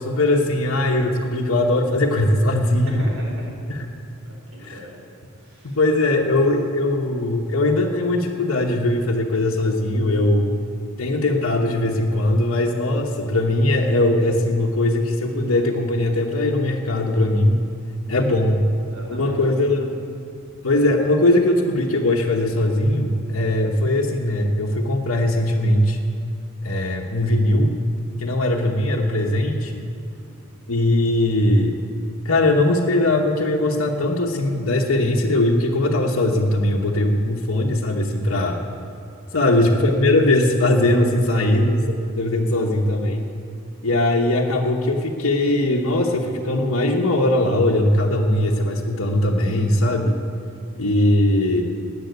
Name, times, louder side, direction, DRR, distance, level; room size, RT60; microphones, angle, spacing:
voice 1, 0.0-2.9 3.7-3.8 4.6-4.8 5.6-10.5 11.0-17.6 18.1-18.6 19.1-20.0 20.6-26.0 26.6-27.7 28.2-29.8 30.7-31.8 32.2-38.6 39.3-43.2 43.8-50.2 50.8-51.6, left 1 dB, 80° left, -1 dB, 1.2 m, -20 dB
voice 2, 2.6-3.5 4.1-4.9 5.3-5.8 6.1-6.4 18.0-19.8 20.2-20.7 30.1-30.4 39.3-39.7 41.1-41.6 42.3-42.7 50.4-50.8, equal, 70° right, -2 dB, 4.5 m, -42 dB
13.5 x 8.8 x 9.4 m, 2.5 s
head